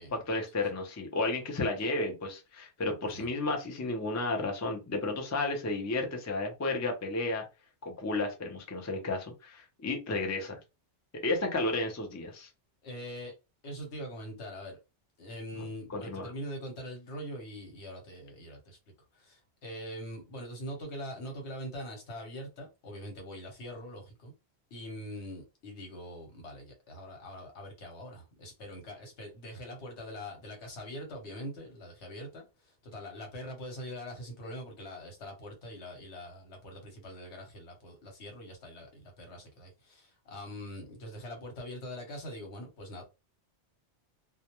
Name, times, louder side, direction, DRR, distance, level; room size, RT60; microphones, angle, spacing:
voice 1, 0.1-7.4 7.8-10.6 11.2-12.5 15.6-16.3, left 2 dB, 25° left, 0.4 m, -32 dB
voice 2, 12.8-13.3 13.6-14.8 15.2-18.8 19.1-24.3 24.7-43.0, equal, 75° left, 1.1 m, -43 dB
2.2 x 2.1 x 2.9 m
omnidirectional pair, 1.2 m